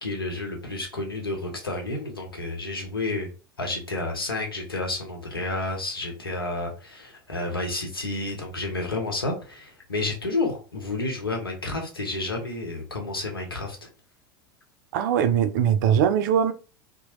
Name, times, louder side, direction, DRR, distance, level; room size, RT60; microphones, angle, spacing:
voice 1, 0.0-3.3 3.6-13.9, left 2 dB, 85° left, 0.8 m, -30 dB
voice 2, 14.9-16.5, right 8 dB, 55° right, 0.4 m, -21 dB
2.8 x 2.0 x 2.9 m
figure-of-eight pair, 80°, 12 cm